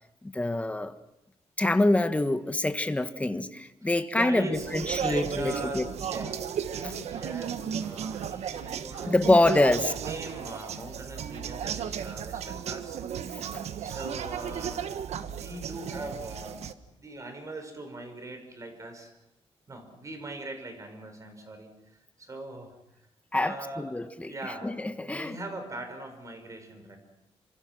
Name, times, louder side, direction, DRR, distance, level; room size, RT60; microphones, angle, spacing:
voice 1, 0.2-0.9 1.6-5.9 9.1-9.9 13.5-13.6 23.3-25.4, left 2 dB, 10° left, 9 dB, 1.5 m, -26 dB
voice 2, 3.8-9.8 10.0-13.0 13.8-14.9 15.2-16.6 16.9-19.1 19.7-22.7 23.4-23.9 24.2-24.7 25.0-27.0, right 2 dB, 30° right, 6 dB, 5.9 m, -41 dB
sound 1, 4.5-16.7, right 8 dB, 80° right, 1.4 m, -35 dB
29.0 x 26.5 x 6.2 m, 0.85 s
cardioid pair, 125°, 11 cm